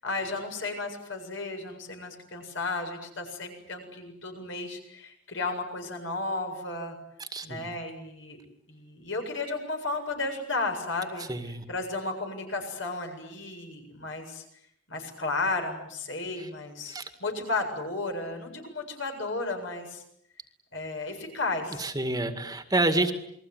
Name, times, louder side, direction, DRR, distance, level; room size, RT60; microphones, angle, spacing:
voice 1, 0.0-7.0 7.4-8.4 8.7-11.3 11.7-14.4 14.9-20.0 20.7-21.9, left 3 dB, 65° left, 4 dB, 7.6 m, -33 dB
voice 2, 7.2-7.6 11.3-11.6 16.4-16.5 16.9-17.1 21.8-23.1, right 2 dB, 20° right, 8 dB, 2.1 m, -28 dB
29.0 x 22.0 x 9.4 m, 0.73 s
head